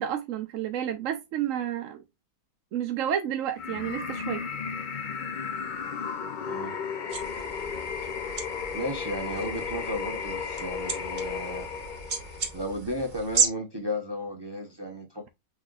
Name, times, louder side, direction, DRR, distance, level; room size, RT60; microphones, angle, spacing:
voice 1, 0.0-2.0 2.7-4.4, right 10 dB, 65° right, 0.9 m, -30 dB
sound 1, 3.5-12.6, left 6 dB, 70° left, 0.4 m, -34 dB
sound 2, 7.1-13.5, right 5 dB, 45° right, 1.1 m, -33 dB
voice 2, 8.7-11.7 12.5-15.2, equal, 20° right, 0.7 m, -34 dB
6.1 x 3.2 x 2.4 m
omnidirectional pair, 1.6 m